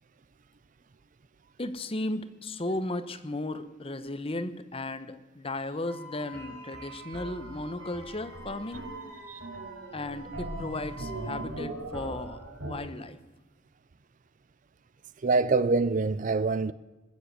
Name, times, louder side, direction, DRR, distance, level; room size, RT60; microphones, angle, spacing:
voice 1, 1.6-8.8 9.9-13.2, left 2 dB, 25° left, 0.9 m, -35 dB
Wind instrument woodwind instrument, 5.8-11.5, right 1 dB, 55° right, 3.7 m, -47 dB
sound 1, 6.3-12.7, right 2 dB, 85° right, 4.1 m, -40 dB
voice 2, 15.2-16.7, right 3 dB, 40° right, 0.4 m, -25 dB
21.0 x 7.6 x 8.1 m
head